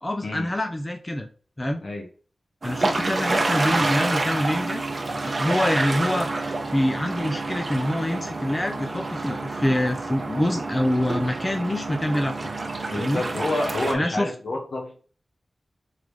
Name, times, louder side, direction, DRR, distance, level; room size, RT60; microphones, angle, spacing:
voice 1, 0.0-1.3 1.6-1.8 2.6-12.5 13.0-13.2 13.9-14.3, left 1 dB, 25° left, 4 dB, 0.6 m, -26 dB
sound 1, 2.6-13.9, right 2 dB, 55° right, 0.7 m, -28 dB
voice 2, 12.9-15.0, left 2 dB, 70° left, 2 dB, 1.2 m, -28 dB
3.7 x 3.5 x 3.2 m, 0.39 s
cardioid pair, 50°, 0 cm